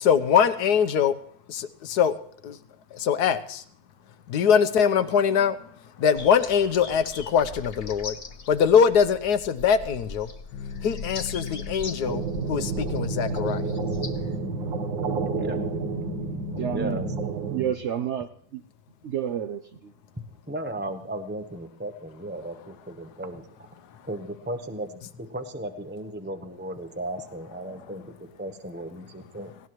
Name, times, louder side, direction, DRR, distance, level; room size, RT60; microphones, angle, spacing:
voice 1, 0.0-1.1 1.5-2.1 2.4-2.6 2.9-3.6 4.3-5.6 6.0-8.1 8.5-10.3 10.8-12.2 12.5-13.7, left 7 dB, 65° left, 12 dB, 1.3 m, -22 dB
sound 1, 6.2-14.4, left 4 dB, 40° left, 1.1 m, -40 dB
sound 2, 10.5-17.3, left 6 dB, 85° left, 1.6 m, -36 dB
sound 3, 12.0-17.7, right 7 dB, 85° right, 2.0 m, -30 dB
voice 2, 14.8-15.7 16.7-17.1 20.5-23.7 24.0-29.6, right 1 dB, 10° right, 7 dB, 0.5 m, -36 dB
voice 3, 16.6-17.0 17.5-18.6 19.0-19.9, right 9 dB, 65° right, 8 dB, 0.7 m, -30 dB
18.5 x 17.5 x 3.1 m, 0.65 s
omnidirectional pair, 2.0 m